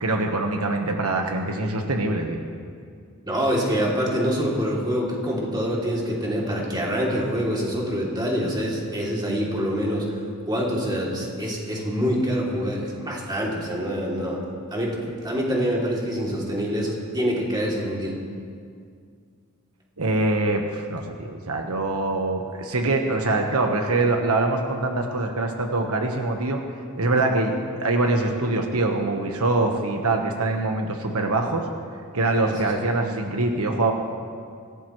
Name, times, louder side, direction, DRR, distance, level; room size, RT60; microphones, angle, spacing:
voice 1, 0.0-2.4 20.0-26.6 26.9-31.6 32.1-33.9, right 2 dB, 80° right, 3 dB, 1.3 m, -24 dB
voice 2, 3.3-10.1 10.5-14.4 14.7-18.2 32.4-32.6, equal, 20° right, -4 dB, 2.8 m, -25 dB
24.5 x 16.5 x 3.2 m, 2.2 s
head